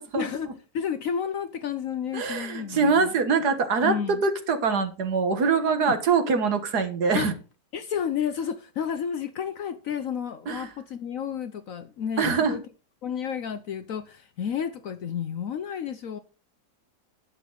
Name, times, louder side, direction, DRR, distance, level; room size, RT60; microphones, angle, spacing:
voice 1, 0.1-3.1 3.8-4.2 5.9-6.0 7.1-7.3 7.7-12.6 13.0-16.2, left 8 dB, 65° left, 0.9 m, -31 dB
voice 2, 2.1-3.9 4.2-7.3 10.5-10.7 12.2-12.6, right 5 dB, 65° right, 1.9 m, -24 dB
11.5 x 8.1 x 3.9 m
omnidirectional pair, 1.9 m